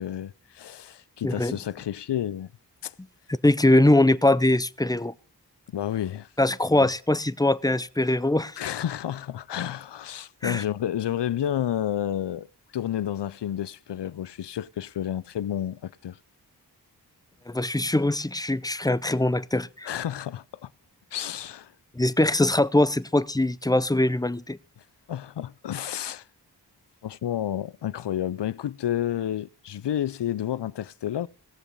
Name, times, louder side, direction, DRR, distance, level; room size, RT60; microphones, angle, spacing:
voice 1, 0.0-2.5 2.8-2.9 5.7-6.3 6.7-6.9 8.6-12.5 12.7-16.2 19.8-20.7 21.1-21.7 25.1-26.2 27.0-31.3, left 11 dB, 80° left, 0.5 m, -30 dB
voice 2, 1.2-1.6 3.4-5.1 6.4-8.6 10.4-10.6 17.5-19.9 22.0-24.6, left 1 dB, 10° left, 0.5 m, -22 dB
17.5 x 7.0 x 5.3 m
wide cardioid pair, 45°, 41 cm